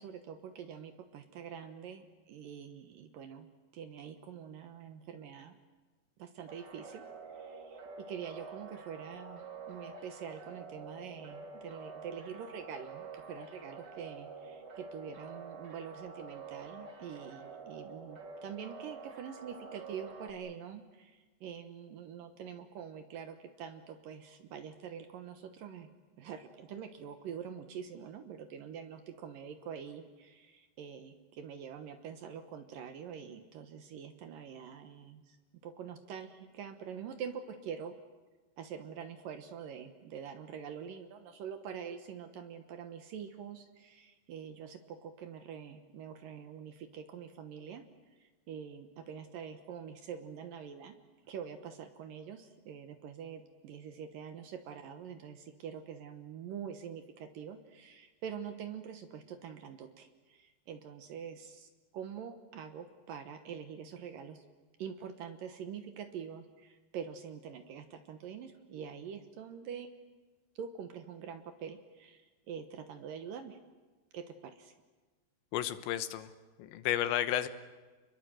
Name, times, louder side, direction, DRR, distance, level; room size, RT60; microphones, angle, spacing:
voice 1, 0.0-3.5 3.7-5.5 6.2-7.0 7.3-25.9 26.2-35.4 35.6-37.9 38.6-47.8 48.5-51.0 51.3-64.4 64.8-69.9 70.6-73.6 74.1-74.7, right 7 dB, 70° right, 8 dB, 2.4 m, -45 dB
sound 1, 6.5-20.3, right 4 dB, 40° right, 1.7 m, -48 dB
voice 2, 75.5-76.3 76.6-77.5, left 12 dB, 90° left, 11 dB, 3.4 m, -32 dB
29.0 x 21.5 x 7.8 m, 1.3 s
omnidirectional pair, 5.0 m